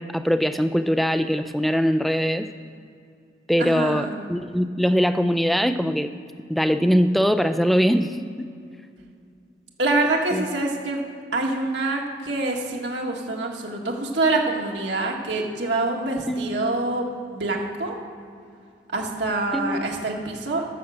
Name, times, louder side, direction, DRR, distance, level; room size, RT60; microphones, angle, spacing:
voice 1, 0.0-2.5 3.5-6.1 6.5-8.5 10.3-10.4 16.3-16.5 19.5-19.8, equal, ahead, 8 dB, 0.4 m, -22 dB
voice 2, 3.6-4.3 9.8-11.0 11.3-17.1 17.3-18.0 18.9-20.6, right 2 dB, 75° right, 0 dB, 1.8 m, -25 dB
13.0 x 7.3 x 6.5 m, 2.4 s
head